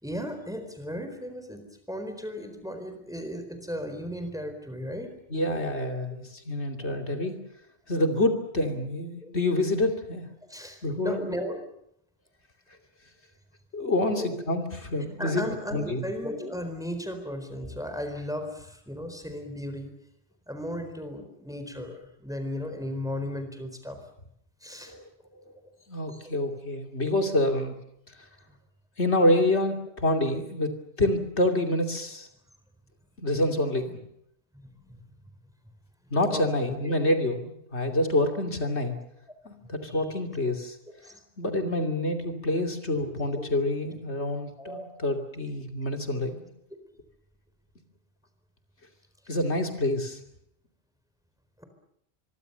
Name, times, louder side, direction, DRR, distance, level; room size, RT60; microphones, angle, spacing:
voice 1, 0.0-5.1 6.9-7.0 9.2-9.4 10.4-11.6 14.0-14.3 15.2-19.9 20.5-24.0 24.6-24.9 26.1-26.3 34.5-35.0 36.3-36.9 39.6-40.0 41.0-41.2 44.6-44.8 49.2-49.3 51.6-51.7, equal, 5° right, 7 dB, 4.3 m, -36 dB
voice 2, 5.3-7.3 7.9-10.3 10.8-11.2 13.7-15.4 15.7-16.0 24.9-25.0 25.9-27.7 29.0-30.7 31.0-32.3 33.2-34.0 36.1-39.0 39.4-40.8 41.4-46.5 49.3-50.2, left 1 dB, 80° left, 5 dB, 3.1 m, -27 dB
25.5 x 23.0 x 6.8 m, 0.73 s
omnidirectional pair, 1.1 m